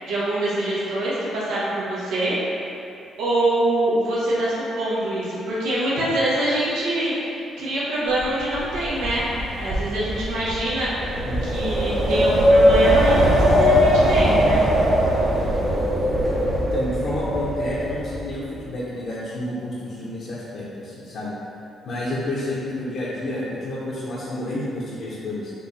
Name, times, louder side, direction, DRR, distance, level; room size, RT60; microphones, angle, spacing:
voice 1, 0.1-2.4 3.2-9.3 9.6-10.9 11.4-14.7, right 1 dB, 85° right, -8 dB, 1.1 m, -24 dB
Wind, 8.2-18.3, equal, 50° right, 1.1 m, -20 dB
voice 2, 16.7-21.3 21.8-25.5, left 1 dB, 65° left, -7 dB, 0.8 m, -30 dB
4.4 x 2.6 x 4.0 m, 2.6 s
cardioid pair, 90°, 0 cm